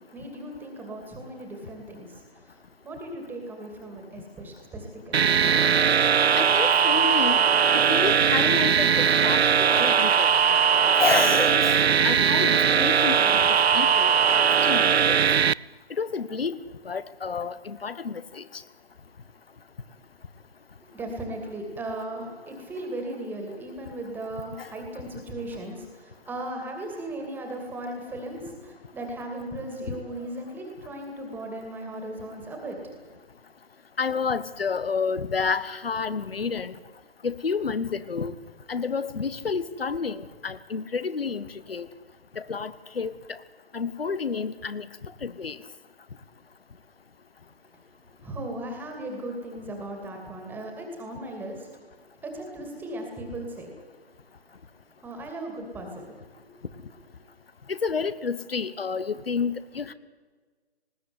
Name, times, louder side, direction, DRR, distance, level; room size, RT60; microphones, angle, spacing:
voice 1, 0.0-5.6 20.9-32.8 48.2-51.7 52.2-53.7 55.0-56.7, right 1 dB, 5° right, 2 dB, 2.6 m, -37 dB
sound 1, 5.1-15.5, right 7 dB, 75° right, 0.5 m, -20 dB
voice 2, 6.4-7.4 7.8-10.6 11.0-14.1 14.6-15.2 16.0-16.6 16.8-18.4 24.6-24.7 29.9-30.0 34.0-36.7 37.2-38.3 38.7-41.9 42.4-43.4 43.7-44.9 45.2-45.6 57.7-59.9, left 5 dB, 65° left, 15 dB, 1.5 m, -30 dB
20.0 x 16.5 x 9.6 m, 1.4 s
figure-of-eight pair, 145°, 32 cm